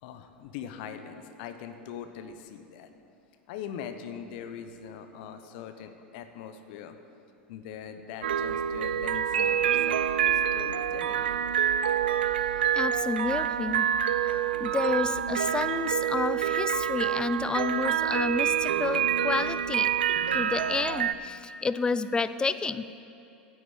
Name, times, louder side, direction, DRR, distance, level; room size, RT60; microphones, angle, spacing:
voice 1, 0.0-2.9 3.5-7.0 7.5-11.3, left 8 dB, 60° left, 8 dB, 0.9 m, -42 dB
sound 1, 8.2-21.1, right 9 dB, 80° right, 0.4 m, -27 dB
voice 2, 12.7-13.9 14.6-19.9 20.3-22.9, left 4 dB, 15° left, 14 dB, 0.4 m, -30 dB
9.4 x 7.9 x 8.1 m, 2.7 s
hypercardioid pair, 90°, 5 cm